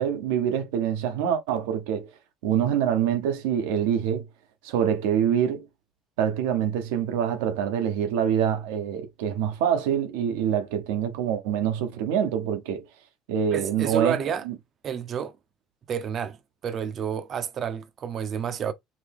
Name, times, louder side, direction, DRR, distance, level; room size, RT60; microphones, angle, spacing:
voice 1, 0.0-2.1 2.4-4.2 4.6-5.6 6.2-12.8 13.3-14.2 14.5-14.6, right 9 dB, 80° right, 1.1 m, -25 dB
voice 2, 13.5-14.5 14.8-15.4 15.9-16.4 16.6-18.7, right 7 dB, 50° right, 0.9 m, -29 dB
5.1 x 2.8 x 3.5 m
hypercardioid pair, 70°, 0 cm